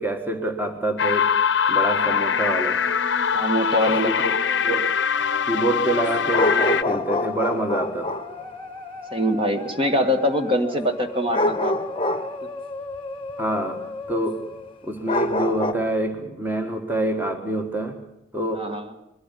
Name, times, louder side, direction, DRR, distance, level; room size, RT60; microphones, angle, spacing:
voice 1, 0.0-1.4 1.7-2.8 4.0-4.3 4.6-4.8 5.5-8.2 13.4-14.5 14.8-18.0 18.3-18.7, right 1 dB, 10° right, 5 dB, 1.5 m, -26 dB
sound 1, 1.0-6.8, left 7 dB, 70° left, 0.7 m, -22 dB
Musical instrument, 1.9-14.9, left 2 dB, 10° left, 1.6 m, -38 dB
voice 2, 2.0-2.5 3.3-4.1 4.4-4.5 9.1-11.7 12.4-12.5 18.5-18.9, equal, 30° right, 6 dB, 1.7 m, -24 dB
sound 2, 3.3-3.5 6.3-8.4 11.3-12.4 13.0-13.1 13.3-13.4 14.1-14.2 15.1-15.7, left 2 dB, 30° left, 1.0 m, -25 dB
22.0 x 13.0 x 9.9 m, 0.88 s
head